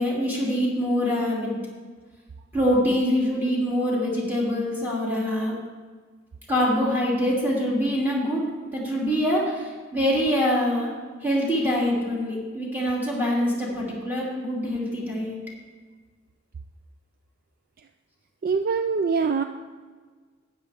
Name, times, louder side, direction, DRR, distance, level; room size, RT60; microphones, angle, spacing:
voice 1, 0.0-1.5 2.5-5.6 6.5-10.9 11.2-15.4, equal, 10° right, -5 dB, 2.9 m, -24 dB
voice 2, 18.4-19.4, right 5 dB, 45° right, 8 dB, 0.4 m, -23 dB
12.5 x 9.4 x 3.5 m, 1.5 s
head